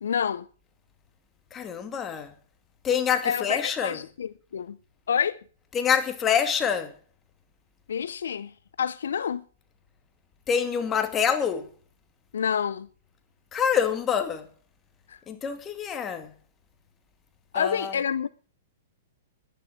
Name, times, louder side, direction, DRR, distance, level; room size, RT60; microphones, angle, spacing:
voice 1, 0.0-0.5 3.2-4.8 5.1-5.4 7.9-9.4 12.3-12.9 15.1-15.2 17.5-18.3, left 7 dB, 80° left, 0.6 m, -28 dB
voice 2, 1.5-2.3 2.8-4.0 5.7-6.9 10.5-11.7 13.5-14.5 15.3-16.3 17.5-17.9, left 7 dB, 25° left, 2.3 m, -26 dB
11.5 x 10.0 x 7.7 m
hypercardioid pair, 125°, 0 cm